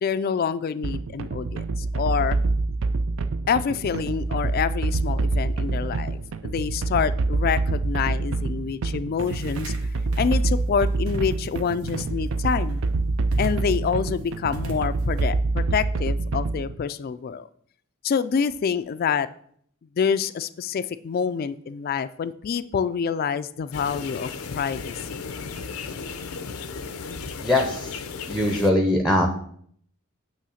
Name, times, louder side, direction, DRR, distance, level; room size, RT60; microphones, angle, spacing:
voice 1, 0.0-2.4 3.5-9.7 10.2-12.8 13.4-17.5 18.0-19.3 20.0-25.3, left 6 dB, 45° left, 14 dB, 0.3 m, -27 dB
sound 1, 0.8-16.8, right 3 dB, 65° right, 0.4 m, -26 dB
sound 2, 9.2-9.8 10.1-10.5 11.1-11.6 11.9-12.7 13.3-13.9 14.5-15.2, right 2 dB, 85° right, 1.2 m, -37 dB
sound 3, 23.7-28.7, left 5 dB, 90° left, 0.6 m, -35 dB
voice 2, 27.4-27.9 28.3-29.3, left 1 dB, ahead, 3 dB, 0.6 m, -21 dB
8.4 x 3.2 x 6.3 m, 0.63 s
head